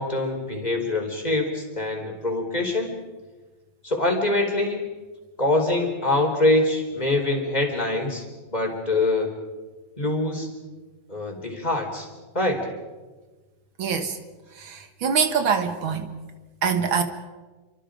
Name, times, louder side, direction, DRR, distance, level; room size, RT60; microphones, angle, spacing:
voice 1, 0.0-2.9 3.8-4.9 5.4-8.2 8.5-9.3 10.0-10.5 11.1-12.1 12.3-12.7, left 2 dB, 20° left, 2 dB, 4.5 m, -24 dB
voice 2, 13.8-14.2 14.6-16.1 16.6-17.0, right 6 dB, 75° right, 6 dB, 2.4 m, -24 dB
29.5 x 25.0 x 5.2 m, 1.2 s
omnidirectional pair, 2.2 m